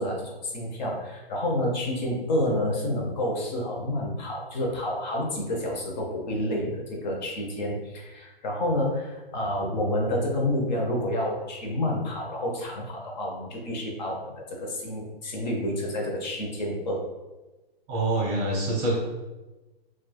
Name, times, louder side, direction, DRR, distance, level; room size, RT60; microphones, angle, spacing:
voice 1, 0.0-17.1, left 1 dB, 45° left, -1 dB, 0.6 m, -29 dB
voice 2, 17.9-19.0, right 2 dB, 25° right, -2 dB, 0.7 m, -25 dB
3.0 x 2.3 x 2.2 m, 1.1 s
hypercardioid pair, 150°, 31 cm